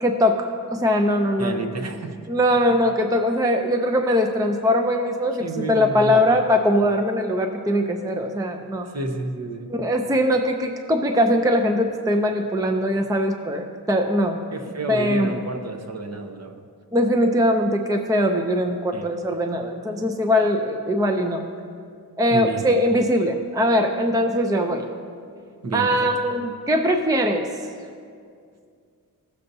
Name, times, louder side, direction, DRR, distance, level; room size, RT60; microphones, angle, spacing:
voice 1, 0.0-1.8 2.3-8.9 9.7-14.4 14.9-15.3 16.9-21.5 22.2-24.9 25.7-27.5, equal, 10° right, 5 dB, 0.5 m, -21 dB
voice 2, 1.4-2.2 5.4-6.3 8.9-9.7 14.5-16.6 18.9-19.1 22.3-22.7 25.6-26.1, right 2 dB, 45° right, 5 dB, 0.8 m, -30 dB
16.0 x 6.7 x 2.7 m, 2.3 s
wide cardioid pair, 95°, 38 cm